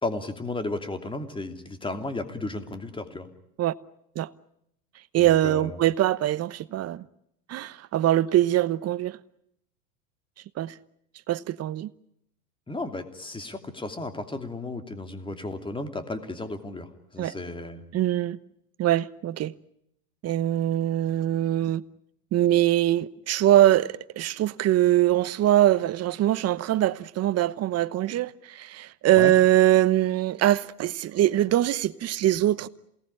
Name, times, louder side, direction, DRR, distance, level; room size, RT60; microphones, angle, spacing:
voice 1, 0.0-3.3 5.2-5.8 12.7-17.8 29.1-29.3, left 2 dB, 10° left, 2.8 m, -34 dB
voice 2, 5.1-7.1 7.5-9.2 10.6-10.7 11.3-11.9 17.2-17.3 17.9-18.4 18.8-19.5 20.2-21.8 22.3-32.7, right 13 dB, 30° right, 1.0 m, -22 dB
28.0 x 19.0 x 10.0 m
hypercardioid pair, 100°, 47 cm